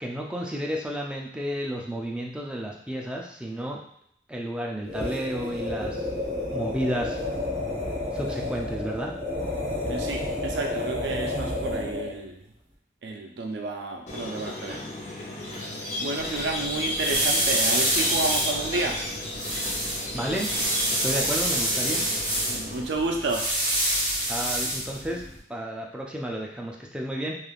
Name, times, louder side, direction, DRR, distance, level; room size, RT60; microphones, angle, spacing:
voice 1, 0.0-3.8 4.3-6.0 6.5-7.2 8.1-9.1 20.1-20.5 21.0-22.0 24.3-25.2 25.5-27.4, equal, 5° right, -1 dB, 0.4 m, -31 dB
sound 1, 4.8-12.2, left 2 dB, 45° right, 0.9 m, -31 dB
voice 2, 9.9-12.4 13.0-14.8 15.5-15.6 16.0-19.0 22.5-23.5, right 3 dB, 70° right, 2 dB, 0.4 m, -31 dB
Squeak, 14.1-22.8, left 1 dB, 40° left, 0.6 m, -33 dB
sound 2, 16.2-25.4, right 1 dB, 20° right, 1.0 m, -27 dB
3.2 x 2.4 x 2.3 m, 0.69 s
head